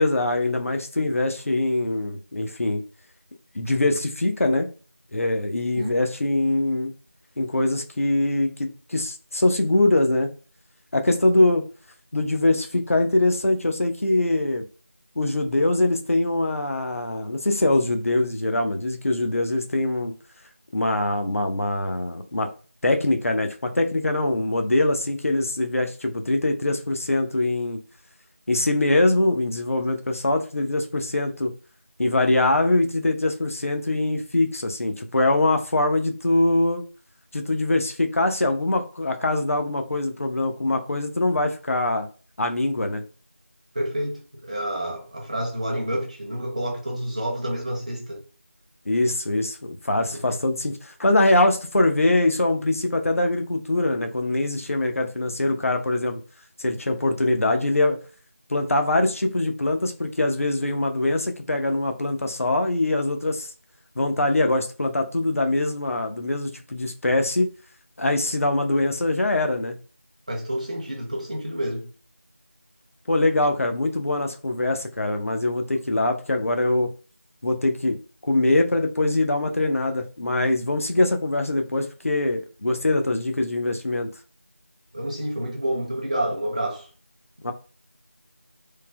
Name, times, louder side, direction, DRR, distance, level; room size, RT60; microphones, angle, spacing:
voice 1, 0.0-2.8 3.5-4.7 5.1-6.9 7.4-10.3 10.9-11.6 12.1-14.6 15.2-20.1 20.7-22.5 22.8-27.8 28.5-31.5 32.0-36.8 37.3-42.1 42.4-43.0 48.9-56.2 56.6-58.0 58.5-63.5 64.0-67.5 68.0-69.8 73.1-76.9 77.4-78.0 78.2-84.1 87.4-87.5, left 2 dB, 70° left, 0.5 m, -23 dB
voice 2, 43.7-48.2 50.1-50.4 70.3-71.9 84.9-86.9, right 1 dB, 30° right, 0.6 m, -29 dB
3.1 x 2.0 x 2.2 m
figure-of-eight pair, 175°, 8 cm